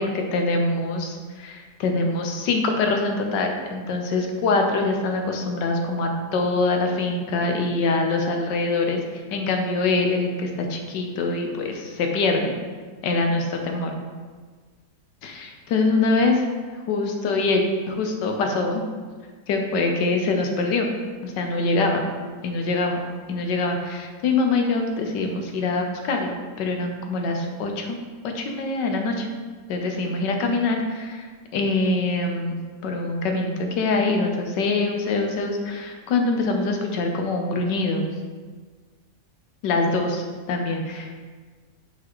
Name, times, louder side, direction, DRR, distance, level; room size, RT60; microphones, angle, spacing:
voice 1, 0.0-9.0 9.3-12.5 13.0-14.0 15.2-16.5 16.9-18.8 19.5-20.9 21.2-22.0 22.4-23.0 23.3-28.0 28.3-29.3 29.7-31.3 31.5-38.1 39.6-41.2, left 3 dB, 90° left, 3 dB, 1.4 m, -24 dB
6.3 x 5.0 x 3.6 m, 1.5 s
omnidirectional pair, 1.8 m